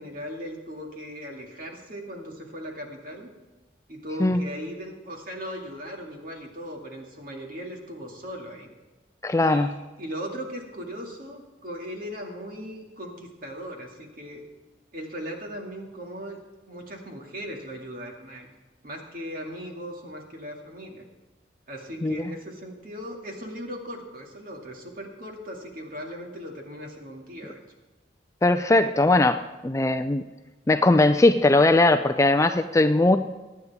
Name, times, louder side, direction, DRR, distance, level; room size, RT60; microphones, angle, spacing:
voice 1, 0.0-3.3 3.9-8.7 9.4-14.4 14.9-16.4 16.7-18.5 18.8-21.0 21.7-27.6, equal, 45° right, 1 dB, 2.3 m, -38 dB
voice 2, 9.2-9.7 22.0-22.3 28.4-30.2 30.7-33.2, left 2 dB, 15° left, 8 dB, 0.3 m, -20 dB
22.5 x 9.6 x 3.6 m, 1.2 s
head